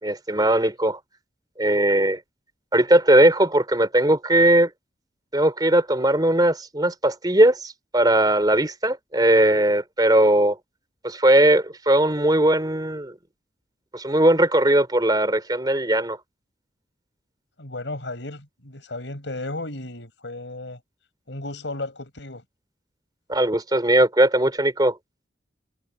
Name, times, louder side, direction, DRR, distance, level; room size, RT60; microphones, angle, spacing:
voice 1, 0.0-1.0 1.6-2.2 2.7-4.7 5.3-10.6 11.0-13.1 13.9-16.2 23.3-24.9, right 1 dB, 20° right, 3.4 m, -19 dB
voice 2, 17.6-20.8 21.3-22.4, left 2 dB, 90° left, 5.1 m, -34 dB
head